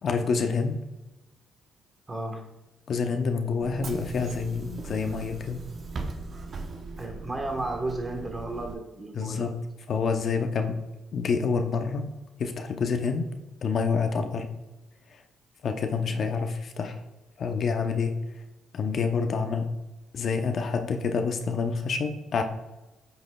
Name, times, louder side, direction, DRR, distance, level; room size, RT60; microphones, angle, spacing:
voice 1, 0.0-0.8 2.9-5.6 9.1-9.5 9.9-10.8 11.1-12.1 12.4-13.3 13.6-14.5 15.6-17.0 17.4-18.1 18.7-19.7 20.1-22.4, left 5 dB, 55° left, 5 dB, 0.7 m, -27 dB
voice 2, 2.1-2.5 7.0-9.5 16.1-16.3, right 2 dB, 25° right, 3 dB, 1.2 m, -34 dB
Bus / Engine, 3.6-8.7, right 3 dB, 45° right, 0.8 m, -39 dB
8.8 x 6.2 x 2.3 m, 1.0 s
cardioid pair, 90°, 0 cm